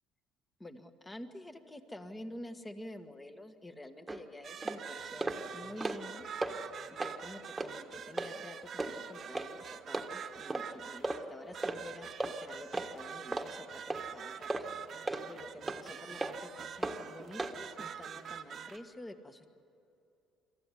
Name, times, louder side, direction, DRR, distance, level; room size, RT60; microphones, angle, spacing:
voice 1, 0.6-6.3 6.9-14.7 14.9-19.5, left 1 dB, 15° left, 8 dB, 1.5 m, -49 dB
sound 1, 4.1-4.2 4.6-4.8 5.2-5.4 5.7-6.1 6.4-6.5 7.0-7.2 7.6-7.7 8.2-8.3 8.8-8.9 9.3-9.5 9.9-10.1 10.5-10.7 11.0-11.2 11.6-11.8 12.2-12.3 12.7-12.9 13.3-13.5 13.9-14.0 14.5-14.7 15.1-15.2 15.7-15.8 16.2-16.3 16.8-17.0 17.4-17.5, right 2 dB, 10° right, 1.6 m, -35 dB
sound 2, 4.4-18.8, right 8 dB, 50° right, 1.1 m, -45 dB
23.5 x 14.5 x 9.7 m, 2.7 s
cardioid pair, 105°, 0 cm